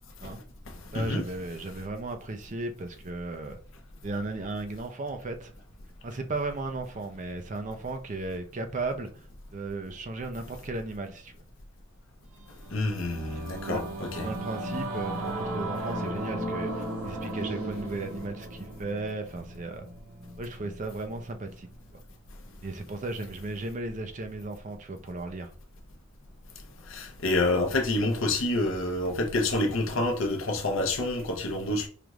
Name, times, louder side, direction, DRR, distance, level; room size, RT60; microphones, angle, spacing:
voice 1, 0.9-3.6 4.0-5.5 6.0-9.1 9.5-11.3 13.7-13.8 14.2-19.9 20.4-22.0 22.6-25.5, right 2 dB, 35° right, 0.5 m, -35 dB
Singing / Musical instrument, 12.4-22.1, right 1 dB, 75° right, 1.3 m, -36 dB
voice 2, 12.7-14.3 26.9-31.9, left 2 dB, 60° left, 0.7 m, -28 dB
4.9 x 2.4 x 3.0 m
head